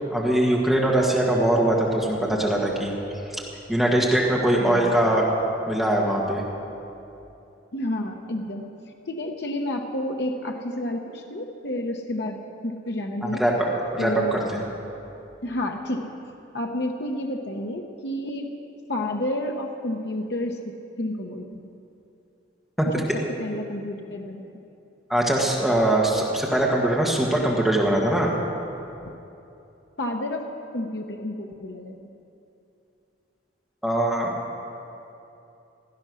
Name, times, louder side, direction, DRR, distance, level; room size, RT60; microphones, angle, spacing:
voice 1, 0.1-2.9 3.7-5.3 5.7-6.4 13.2-13.5 13.9-14.6 22.8-22.9 25.1-28.3 33.8-34.3, right 1 dB, ahead, -3 dB, 1.6 m, -22 dB
voice 2, 4.6-4.9 7.7-8.6 9.1-13.4 14.0-14.4 15.4-16.1 16.5-18.5 18.9-21.7 22.9-23.0 23.4-24.4 30.0-30.5 30.7-32.0, left 1 dB, 60° left, 3 dB, 0.9 m, -30 dB
16.5 x 13.0 x 6.2 m, 2.8 s
head